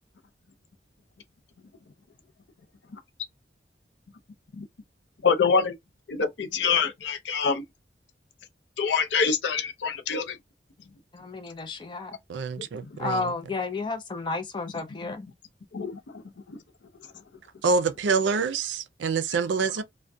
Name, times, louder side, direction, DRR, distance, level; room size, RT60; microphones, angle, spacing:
voice 1, 5.2-5.7 6.1-7.6 8.8-10.4 12.6-12.9 15.0-15.1 15.7-16.2 16.5-16.6, left 5 dB, 80° left, 0.5 m, -26 dB
voice 2, 11.1-12.2 13.0-15.3, left 3 dB, 25° left, 0.4 m, -32 dB
voice 3, 12.3-13.3 17.6-19.8, right 4 dB, 85° right, 0.4 m, -26 dB
2.2 x 2.1 x 2.6 m
head